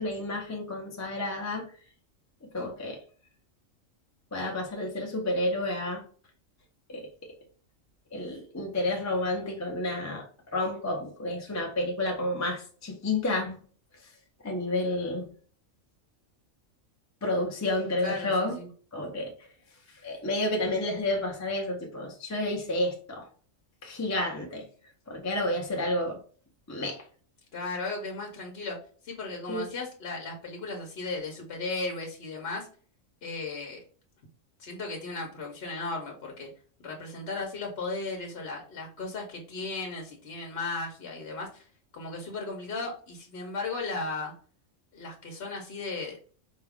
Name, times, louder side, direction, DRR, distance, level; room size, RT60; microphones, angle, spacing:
voice 1, 0.0-1.7 2.5-3.0 4.3-6.0 6.9-7.4 8.1-10.3 10.5-13.6 14.4-15.3 17.2-18.6 18.9-19.3 20.0-23.3 23.8-24.7 25.1-26.2 26.7-27.0 29.5-29.6, left 1 dB, 20° left, 0.5 m, -30 dB
voice 2, 18.0-18.7 27.5-28.8 29.0-32.7 33.2-33.8 34.6-36.5 36.8-41.6 41.9-44.3 44.9-46.2, left 3 dB, 55° left, 1.0 m, -36 dB
4.6 x 2.4 x 3.4 m
omnidirectional pair, 1.4 m